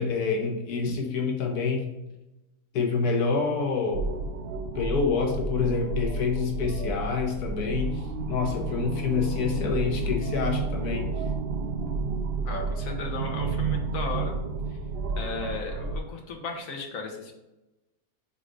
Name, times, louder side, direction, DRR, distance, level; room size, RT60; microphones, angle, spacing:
voice 1, 0.0-1.8 2.7-4.1 4.7-8.0 8.3-11.1, left 5 dB, 90° left, 2 dB, 1.3 m, -27 dB
sound 1, 3.9-16.0, right 4 dB, 65° right, 0.6 m, -31 dB
voice 2, 12.4-14.3 14.7-14.8 15.2-17.3, left 3 dB, 60° left, 1 dB, 1.5 m, -35 dB
5.5 x 3.8 x 5.0 m, 0.98 s
omnidirectional pair, 1.6 m